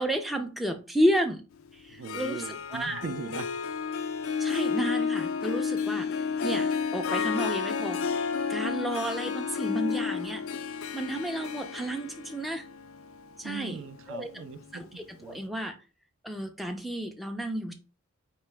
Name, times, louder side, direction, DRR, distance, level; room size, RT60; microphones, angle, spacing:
voice 1, 0.0-1.4 1.7-2.4 2.7-3.0 4.4-6.1 6.4-8.0 8.5-10.5 10.9-12.6 13.4-13.8 14.1-14.3 14.7-15.8 16.2-17.7, right 1 dB, ahead, 0.4 m, -31 dB
Harp, 1.9-14.8, left 6 dB, 70° left, 0.4 m, -31 dB
voice 2, 1.9-3.5 13.4-14.8 15.2-15.4, right 4 dB, 60° right, 0.4 m, -39 dB
4.6 x 2.9 x 3.3 m
head